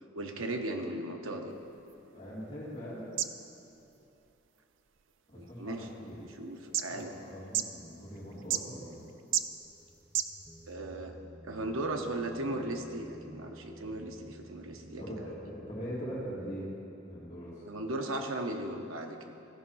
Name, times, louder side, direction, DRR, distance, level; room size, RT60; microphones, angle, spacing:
voice 1, 0.1-1.5 5.3-5.9 6.2-7.1 10.7-11.2 11.4-15.3 17.7-19.2, right 1 dB, 90° right, 4 dB, 0.9 m, -37 dB
sound 1, 1.5-10.7, right 11 dB, 70° right, 0.4 m, -39 dB
voice 2, 2.1-3.1 5.3-6.2 6.9-9.1 15.0-16.7 17.1-17.6, equal, 35° left, -7 dB, 2.5 m, -41 dB
sound 2, 9.6-17.0, right 1 dB, 10° right, 0.7 m, -53 dB
15.5 x 5.4 x 5.6 m, 2.9 s
head